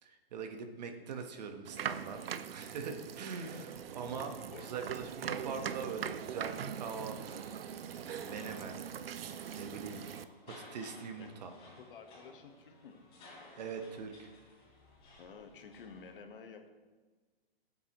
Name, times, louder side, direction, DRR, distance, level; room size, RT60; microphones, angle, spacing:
voice 1, 0.0-2.2 2.5-8.9 9.1-10.0 10.5-11.6 13.6-14.3, right 5 dB, 45° right, 5 dB, 1.3 m, -43 dB
sound 1, 1.6-10.2, right 8 dB, 70° right, 0.7 m, -42 dB
sound 2, 7.3-16.2, left 2 dB, 20° left, 3.6 m, -57 dB
voice 2, 11.8-13.0 15.2-16.7, left 5 dB, 60° left, 5 dB, 1.4 m, -51 dB
17.0 x 8.2 x 3.1 m, 1.3 s
hypercardioid pair, 165°, 30 cm